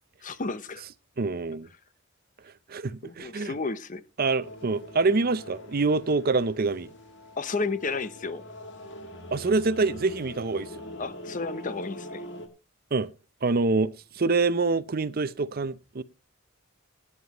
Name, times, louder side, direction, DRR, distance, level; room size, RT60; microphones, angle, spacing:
voice 1, 0.2-0.8 3.0-4.0 7.4-8.4 11.0-12.2, left 3 dB, 40° left, 0.8 m, -32 dB
voice 2, 1.2-1.7 2.4-3.5 4.2-6.9 9.3-10.8 12.9-13.1 13.4-16.0, right 3 dB, 45° right, 0.6 m, -26 dB
sound 1, 4.4-12.5, left 1 dB, 55° left, 2.2 m, -43 dB
18.5 x 9.6 x 3.0 m
head